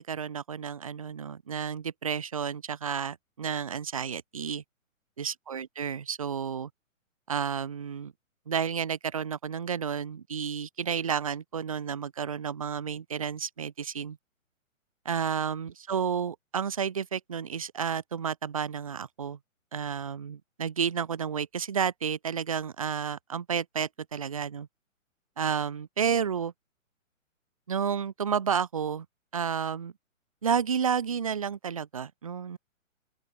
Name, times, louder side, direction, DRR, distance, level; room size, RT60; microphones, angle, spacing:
voice 1, 0.0-4.6 5.2-6.7 7.3-8.1 8.5-14.2 15.1-19.4 19.7-24.7 25.4-26.5 27.7-29.1 29.3-29.9 30.4-32.6, right 7 dB, 25° right, 0.4 m, -31 dB
open air
hypercardioid pair, 155°, 41 cm